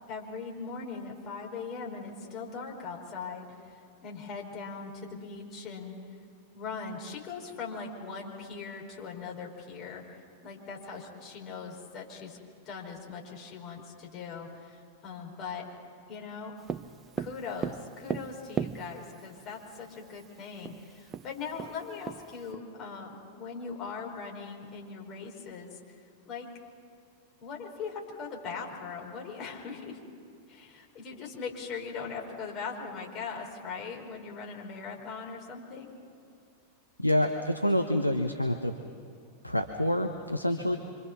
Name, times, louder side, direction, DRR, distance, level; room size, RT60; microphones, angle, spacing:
voice 1, 0.1-6.2 6.5-12.4 12.6-15.7 16.1-16.6 17.2-25.9 26.3-26.5 27.4-30.0 30.5-35.9, left 5 dB, 35° left, 0 dB, 4.8 m, -40 dB
Tap, 16.7-19.3 20.3-20.4 20.7-20.8 21.1-22.5, right 8 dB, 25° right, 0.6 m, -35 dB
voice 2, 37.0-38.7 39.4-40.8, left 1 dB, 90° left, 5 dB, 1.1 m, -27 dB
26.5 x 26.0 x 6.1 m, 2.7 s
figure-of-eight pair, 90°, 0 cm